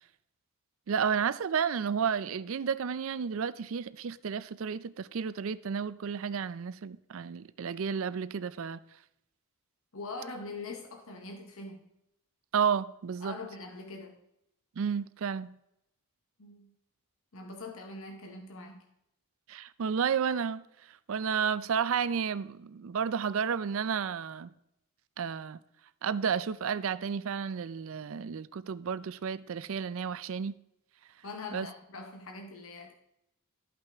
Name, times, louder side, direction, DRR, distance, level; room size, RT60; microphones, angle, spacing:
voice 1, 0.9-8.8 12.5-13.4 14.8-15.5 19.5-20.6 21.1-24.5 25.2-25.6 26.0-30.6 31.5-31.7, right 7 dB, 65° right, 0.4 m, -32 dB
voice 2, 9.9-11.9 13.2-14.2 16.4-16.7 17.3-18.8 31.2-32.9, left 3 dB, 65° left, 1.0 m, -43 dB
13.0 x 5.6 x 3.4 m
head